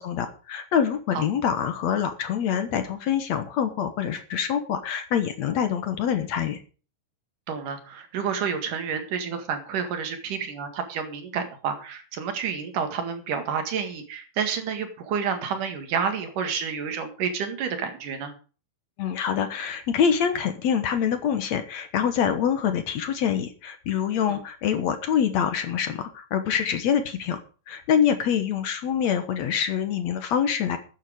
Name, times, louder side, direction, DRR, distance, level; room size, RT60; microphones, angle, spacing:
voice 1, 0.0-6.6 19.0-27.4 27.7-30.8, left 8 dB, 65° left, 9 dB, 2.3 m, -25 dB
voice 2, 7.5-18.3 24.3-24.4, right 6 dB, 75° right, 7 dB, 3.4 m, -29 dB
13.5 x 9.6 x 5.1 m, 0.37 s
omnidirectional pair, 3.8 m